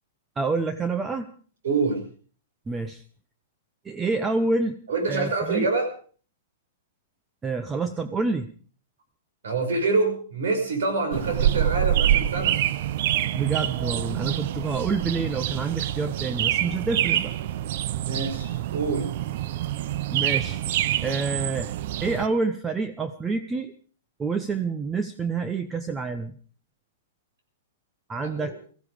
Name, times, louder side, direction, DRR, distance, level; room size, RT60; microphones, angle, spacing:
voice 1, 0.4-1.3 2.7-3.0 3.8-4.8 5.1-5.7 7.4-8.5 13.3-17.3 20.1-20.6 21.0-21.7 22.0-23.7 24.2-26.4 28.1-28.5, right 4 dB, 10° right, 10 dB, 0.7 m, -27 dB
voice 2, 1.6-2.0 4.9-5.9 9.4-12.6 18.1-19.1, right 3 dB, 80° right, 5 dB, 5.6 m, -26 dB
sound 1, 11.1-22.3, right 12 dB, 55° right, 0.7 m, -26 dB
18.0 x 14.5 x 4.9 m, 0.42 s
hypercardioid pair, 150°, 0 cm